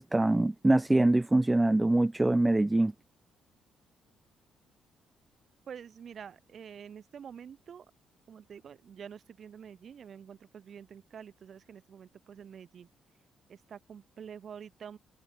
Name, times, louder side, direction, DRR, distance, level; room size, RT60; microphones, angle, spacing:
voice 1, 0.0-2.9, right 2 dB, 15° right, 0.5 m, -24 dB
voice 2, 5.7-7.9 8.3-12.9 13.5-15.0, right 7 dB, 55° right, 1.9 m, -47 dB
cardioid pair, 90°, 0 cm